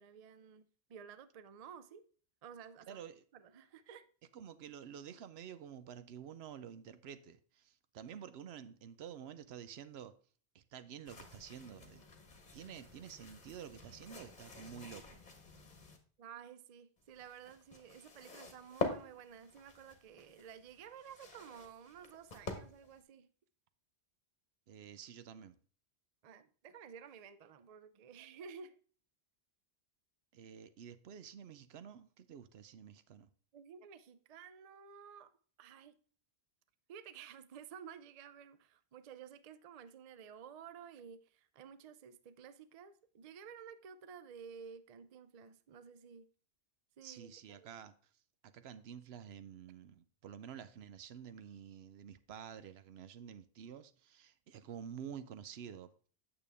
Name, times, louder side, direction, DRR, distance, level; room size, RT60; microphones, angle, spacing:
voice 1, 0.0-2.0 2.4-3.0 3.3-4.1 16.2-23.3 26.2-28.7 33.5-35.3 35.6-36.0 36.9-46.3 47.0-47.7, right 7 dB, 50° right, 0.5 m, -53 dB
voice 2, 2.9-3.2 4.3-10.1 10.5-12.0 12.5-15.2 24.7-25.6 30.3-33.3 47.0-47.9 48.4-55.9, right 8 dB, 70° right, 0.8 m, -50 dB
sound 1, 11.0-16.0 17.0-23.0, left 3 dB, 40° left, 1.2 m, -46 dB
8.9 x 6.8 x 3.4 m
omnidirectional pair, 1.1 m